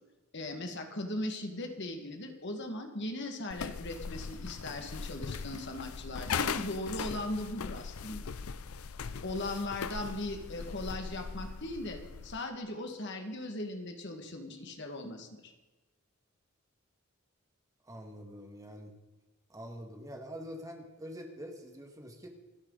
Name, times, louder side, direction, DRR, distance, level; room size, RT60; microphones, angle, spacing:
voice 1, 0.3-8.3 9.2-15.5, left 1 dB, 55° left, 4 dB, 2.0 m, -38 dB
sound 1, 3.5-12.4, left 6 dB, 85° left, 0.6 m, -39 dB
voice 2, 17.8-18.9 19.5-22.3, equal, 15° right, 2 dB, 2.0 m, -45 dB
28.0 x 10.5 x 4.1 m, 1.1 s
head